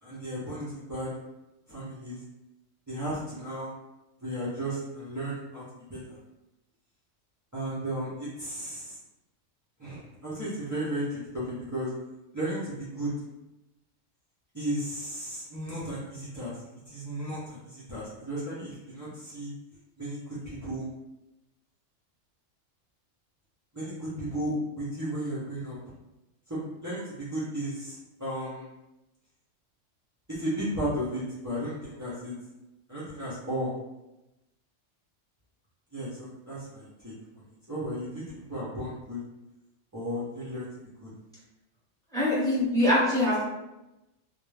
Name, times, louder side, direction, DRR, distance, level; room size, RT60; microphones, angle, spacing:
voice 1, 0.0-1.1 1.7-2.2 2.9-3.7 4.2-5.6 5.9-6.2 7.5-9.0 9.8-11.9 12.3-13.1 14.5-16.6 16.9-19.5 20.0-20.8 23.7-25.8 26.5-28.7 30.3-32.3 32.9-33.7 35.9-37.1 37.7-39.2 39.9-40.7 41.0-41.1, right 1 dB, 30° right, -10 dB, 0.3 m, -34 dB
voice 2, 42.1-43.4, left 1 dB, 5° left, -9 dB, 0.8 m, -23 dB
2.3 x 2.1 x 3.2 m, 0.97 s
omnidirectional pair, 1.3 m